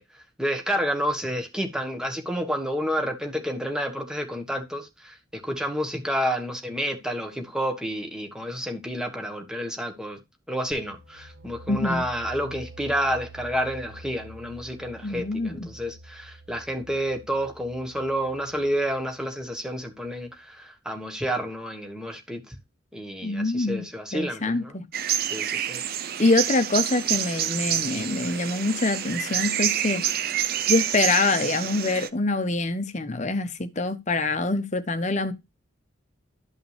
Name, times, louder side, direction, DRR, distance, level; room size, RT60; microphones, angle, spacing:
voice 1, 0.0-10.2 10.5-22.6 22.9-24.7 25.2-25.8, equal, 5° right, 1.4 m, -30 dB
sound 1, 10.7-20.3, right 1 dB, 70° right, 1.9 m, -47 dB
voice 2, 11.7-12.0 15.0-15.7 23.2-23.8 24.1-24.8 26.2-30.0 30.7-35.3, left 2 dB, 35° left, 0.9 m, -25 dB
sound 2, 24.9-32.1, right 10 dB, 45° right, 0.6 m, -27 dB
12.0 x 5.7 x 3.3 m
head